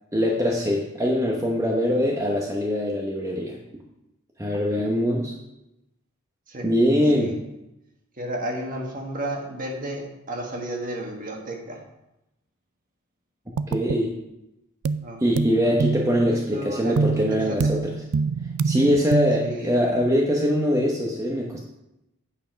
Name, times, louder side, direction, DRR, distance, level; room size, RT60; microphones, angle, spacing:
voice 1, 0.1-3.6 4.4-5.3 6.6-7.4 13.7-14.1 15.2-18.0 18.6-21.6, equal, 15° right, -2 dB, 0.9 m, -22 dB
voice 2, 8.2-11.8 15.0-15.8 16.2-17.7 19.4-19.8, right 1 dB, 40° right, 1 dB, 1.6 m, -33 dB
sound 1, 13.6-14.0 14.8-15.1 15.4-16.3 17.0-19.6, right 4 dB, 85° right, 0.4 m, -26 dB
9.0 x 5.6 x 5.2 m, 0.90 s
head